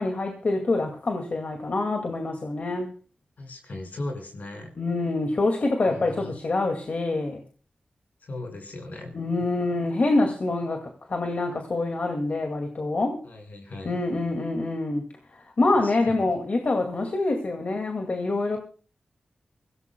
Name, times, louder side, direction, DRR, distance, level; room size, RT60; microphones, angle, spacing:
voice 1, 0.0-2.9 4.8-7.4 9.1-10.8 11.1-13.2 13.9-15.0 15.3-18.6, left 2 dB, 60° left, 3 dB, 2.2 m, -26 dB
voice 2, 3.4-4.7 5.8-6.3 8.2-9.3 13.2-14.0 15.8-16.3, left 2 dB, 75° left, 3 dB, 5.5 m, -38 dB
24.5 x 17.0 x 2.3 m, 0.38 s
cardioid pair, 55°, 3 cm